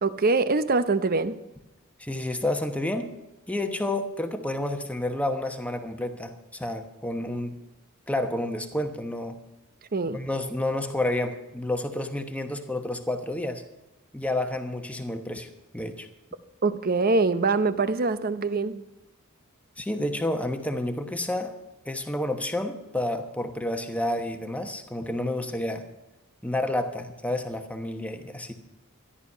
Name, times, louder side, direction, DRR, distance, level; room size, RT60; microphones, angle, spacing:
voice 1, 0.0-1.4 9.9-10.2 16.6-18.9, right 3 dB, 40° right, 13 dB, 0.7 m, -24 dB
voice 2, 2.0-3.1 3.5-7.6 8.1-9.4 10.1-13.6 14.1-16.1 19.8-21.5 21.8-25.8 26.4-28.5, left 1 dB, 5° left, 6 dB, 1.1 m, -30 dB
13.5 x 11.5 x 5.6 m, 1.0 s
head